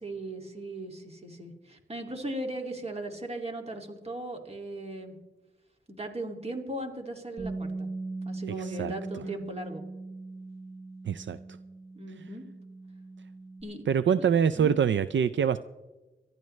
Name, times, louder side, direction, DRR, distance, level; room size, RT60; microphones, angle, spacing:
voice 1, 0.0-5.2 5.9-7.9 8.2-9.8 11.9-12.5 13.6-13.8 14.2-14.3 14.6-14.8, right 1 dB, 30° right, 2 dB, 2.4 m, -38 dB
Bass guitar, 7.4-13.6, right 3 dB, 45° right, 3.6 m, -40 dB
voice 2, 8.6-8.9 11.1-11.4 13.9-15.6, right 7 dB, 70° right, 13 dB, 0.4 m, -25 dB
25.0 x 12.0 x 3.2 m, 1.1 s
wide cardioid pair, 85°, 20 cm